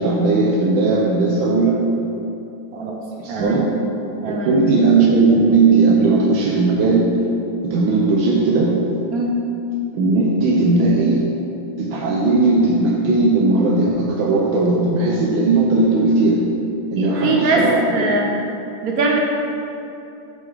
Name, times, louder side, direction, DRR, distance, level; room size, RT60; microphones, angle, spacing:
voice 1, 0.0-1.9 3.2-3.9 4.3-7.2 7.6-8.8 9.9-11.3 11.8-16.5 16.9-18.1, right 3 dB, 80° right, -2 dB, 1.5 m, -17 dB
voice 2, 3.3-3.7 4.2-4.6 9.1-9.4 17.0-17.6 17.9-18.3 18.8-19.2, right 3 dB, 60° right, -1 dB, 1.1 m, -21 dB
7.0 x 6.9 x 3.4 m, 2.7 s
omnidirectional pair, 2.2 m